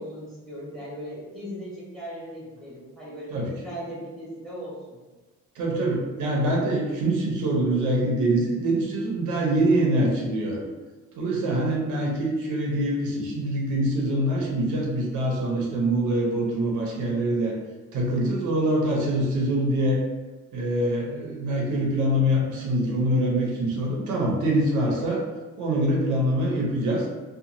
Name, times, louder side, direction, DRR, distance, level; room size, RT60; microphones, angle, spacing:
voice 1, 0.0-5.0, equal, ahead, -7 dB, 1.2 m, -38 dB
voice 2, 5.6-10.6 11.2-17.5 17.9-20.0 20.5-25.2 25.6-27.1, right 1 dB, 85° right, -1 dB, 0.7 m, -24 dB
2.8 x 2.3 x 2.5 m, 1.2 s
cardioid pair, 90°, 30 cm